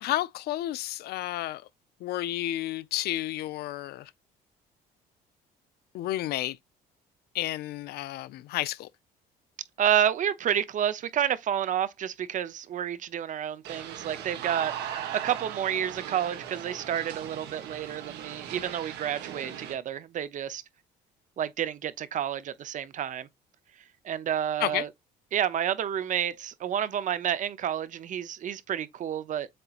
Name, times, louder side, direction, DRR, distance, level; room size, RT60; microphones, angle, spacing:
voice 1, 0.0-1.6 2.0-4.1 5.9-6.6 7.3-8.9 24.6-24.9, left 15 dB, 70° left, 0.4 m, -31 dB
voice 2, 9.8-20.6 21.4-23.3 24.0-24.9 25.3-29.5, right 9 dB, 50° right, 0.6 m, -30 dB
sound 1, 13.6-19.7, right 9 dB, 80° right, 1.3 m, -39 dB
7.6 x 2.8 x 2.4 m
cardioid pair, 110°, 17 cm